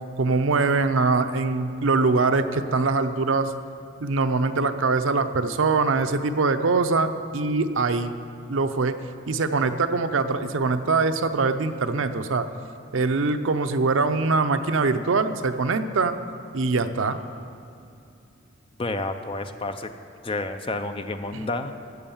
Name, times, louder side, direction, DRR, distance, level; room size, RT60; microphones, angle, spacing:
voice 1, 0.2-3.5 4.0-8.2 8.5-9.0 9.3-12.5 12.9-16.1 16.5-17.2 21.3-21.4, right 3 dB, 70° right, 9 dB, 0.6 m, -23 dB
voice 2, 18.8-19.9 20.2-21.8, left 2 dB, 25° left, 8 dB, 0.5 m, -30 dB
12.5 x 7.8 x 7.2 m, 2.6 s
head